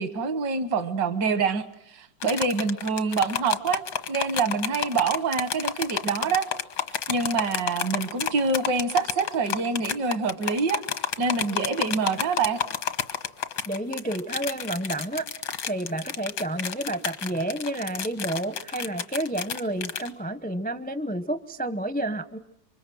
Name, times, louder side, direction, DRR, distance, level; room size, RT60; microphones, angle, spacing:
voice 1, 0.0-3.8 4.1-6.5 7.1-10.8 11.2-12.6, right 4 dB, 75° right, 12 dB, 1.9 m, -26 dB
sound 1, 2.2-20.1, left 9 dB, 85° left, 2.0 m, -31 dB
voice 2, 13.7-15.2 15.6-22.4, right 1 dB, 10° left, 12 dB, 0.3 m, -30 dB
27.5 x 24.5 x 7.7 m, 0.76 s
omnidirectional pair, 1.9 m